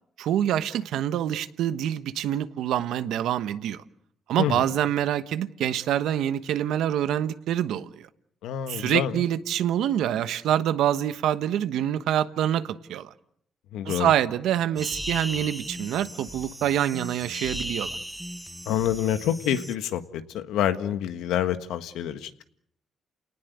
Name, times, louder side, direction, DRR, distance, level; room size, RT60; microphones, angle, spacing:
voice 1, 0.2-3.8 4.3-8.1 8.7-13.1 13.8-18.0, right 11 dB, 85° right, 1.2 m, -26 dB
voice 2, 8.4-9.2 13.7-14.1 18.6-22.4, left 10 dB, 90° left, 1.6 m, -27 dB
sound 1, 14.8-19.8, equal, 5° right, 1.0 m, -36 dB
29.5 x 19.0 x 8.2 m
cardioid pair, 90°, 0 cm